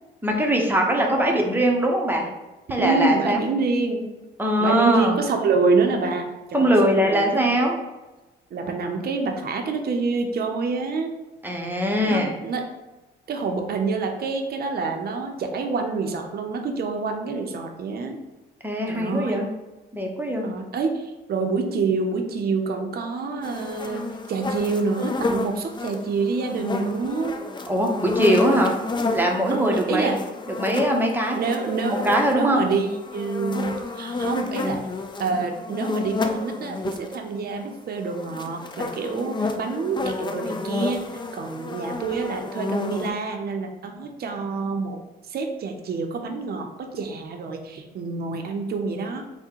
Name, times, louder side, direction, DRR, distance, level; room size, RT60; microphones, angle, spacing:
voice 1, 0.2-2.3 2.7-3.4 4.4-5.2 6.5-7.8 11.4-12.3 18.6-19.5 19.9-20.5 27.7-28.7 29.1-30.1 30.6-31.4 31.9-32.7, equal, 10° right, 1 dB, 0.7 m, -21 dB
voice 2, 2.8-4.1 4.6-7.5 8.5-11.2 12.0-12.6 13.3-18.2 18.9-19.4 20.4-27.4 29.5-30.2 31.3-31.9 32.3-34.8 35.2-45.0 45.3-49.2, right 4 dB, 50° right, 3 dB, 0.6 m, -27 dB
sound 1, 23.4-37.2 38.0-43.1, left 3 dB, 25° left, 0.4 m, -30 dB
3.6 x 2.2 x 4.4 m, 1.1 s
cardioid pair, 90°, 20 cm